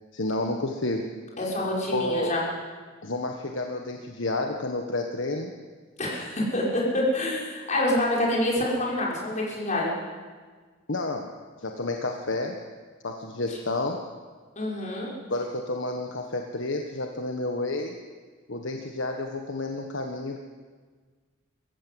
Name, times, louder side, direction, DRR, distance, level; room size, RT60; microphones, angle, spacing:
voice 1, 0.1-1.1 1.9-2.3 3.0-5.5 10.9-11.3 11.6-12.6 13.0-14.0 15.3-18.0 18.5-20.4, left 2 dB, 65° left, 3 dB, 1.5 m, -30 dB
voice 2, 1.4-2.4 6.0-9.9 13.5-13.6 14.6-15.1, left 1 dB, 40° left, -4 dB, 5.9 m, -27 dB
23.5 x 14.5 x 7.9 m, 1.5 s
head